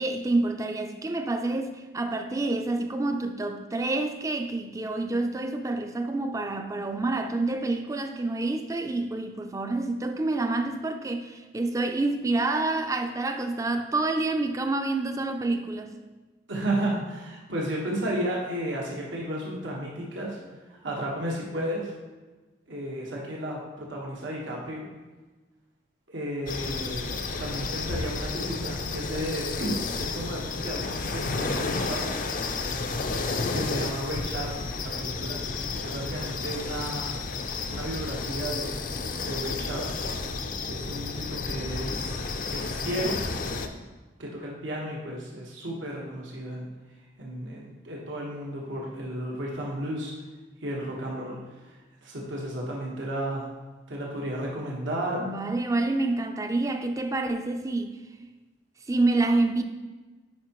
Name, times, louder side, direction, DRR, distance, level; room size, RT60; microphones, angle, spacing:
voice 1, 0.0-15.9 55.2-58.0 58.9-59.6, right 2 dB, 15° right, 0.4 m, -28 dB
voice 2, 16.5-20.4 20.7-21.9 22.7-24.9 26.1-27.1 27.4-32.2 33.5-35.4 35.8-37.2 37.7-38.7 39.2-40.1 40.6-43.2 44.2-46.7 47.2-50.1 50.6-51.4 51.7-53.5 53.9-55.3, right 1 dB, 90° right, 1.3 m, -33 dB
sound 1, 26.5-43.7, left 3 dB, 45° left, 0.5 m, -31 dB
9.3 x 5.4 x 3.0 m
head